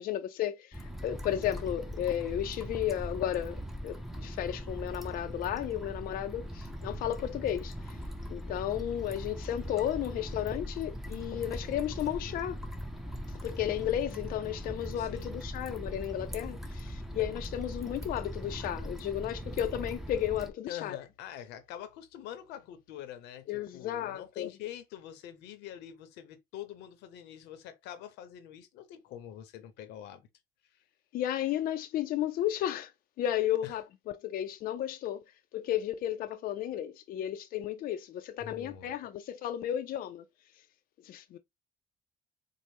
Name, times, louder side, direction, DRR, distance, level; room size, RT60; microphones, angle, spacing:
voice 1, 0.0-8.0 8.3-12.6 13.4-21.0 23.5-24.5 31.1-32.9 33.2-33.8 34.2-35.2 35.5-40.2 41.0-41.4, left 11 dB, 60° left, 0.4 m, -33 dB
sound 1, 0.7-20.5, equal, ahead, 0.7 m, -40 dB
voice 2, 15.0-15.3 20.7-30.3 30.7-30.8 33.6-33.7 38.4-38.9, left 11 dB, 90° left, 0.7 m, -45 dB
4.1 x 2.0 x 3.3 m
cardioid pair, 110°, 17 cm